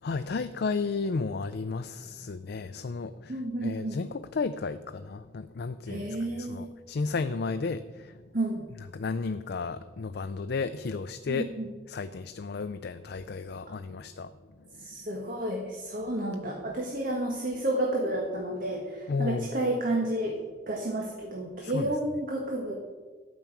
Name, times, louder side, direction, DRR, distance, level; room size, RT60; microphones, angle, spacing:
voice 1, 0.0-8.2 8.9-11.5 11.9-14.3 14.6-14.9 19.1-19.5 21.6-21.9, left 4 dB, 60° left, 10 dB, 0.4 m, -33 dB
voice 2, 3.3-4.0 5.9-6.7 8.3-8.7 11.3-11.6 14.8-20.4 20.7-22.7, right 1 dB, 50° right, 0 dB, 1.5 m, -31 dB
12.5 x 6.0 x 8.6 m, 1.4 s
head